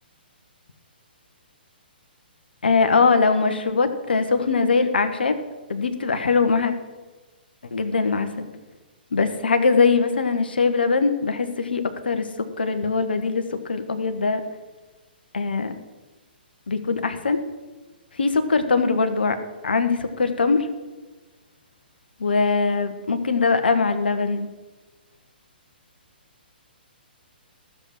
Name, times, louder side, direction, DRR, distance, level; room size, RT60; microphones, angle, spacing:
voice 1, 2.6-5.4 5.7-6.7 7.7-8.5 9.1-14.4 15.3-15.7 16.7-17.4 18.2-19.4 19.6-20.7 22.2-24.5, left 4 dB, 65° left, 8 dB, 1.3 m, -21 dB
13.0 x 7.3 x 7.4 m, 1.2 s
figure-of-eight pair, 125°, 6 cm